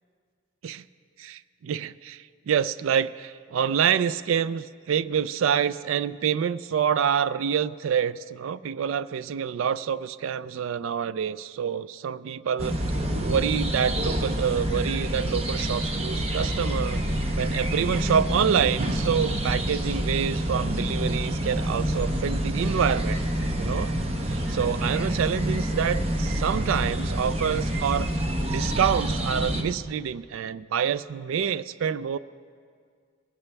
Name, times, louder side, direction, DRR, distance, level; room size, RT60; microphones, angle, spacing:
voice 1, 1.2-12.8 13.2-23.2 23.6-23.9 24.3-28.1 28.4-32.2, right 8 dB, 80° right, 16 dB, 0.3 m, -27 dB
sound 1, 12.6-29.6, right 1 dB, 30° right, 0.9 m, -27 dB
20.5 x 15.5 x 3.4 m, 2.1 s
head